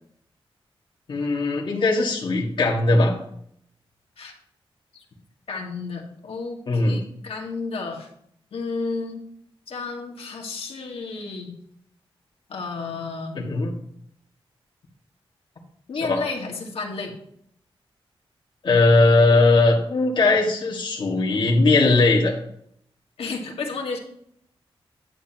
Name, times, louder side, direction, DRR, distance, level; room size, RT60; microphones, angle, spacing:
voice 1, 1.1-3.1 6.7-7.0 13.4-13.7 16.1-16.2 18.6-22.3, left 2 dB, 55° left, -4 dB, 1.9 m, -19 dB
voice 2, 5.5-8.1 8.5-9.2 9.7-11.5 12.5-13.5 15.9-17.1 23.2-24.0, left 4 dB, 85° left, 1 dB, 1.8 m, -32 dB
11.0 x 8.7 x 3.0 m, 0.69 s
wide cardioid pair, 170°, 10 cm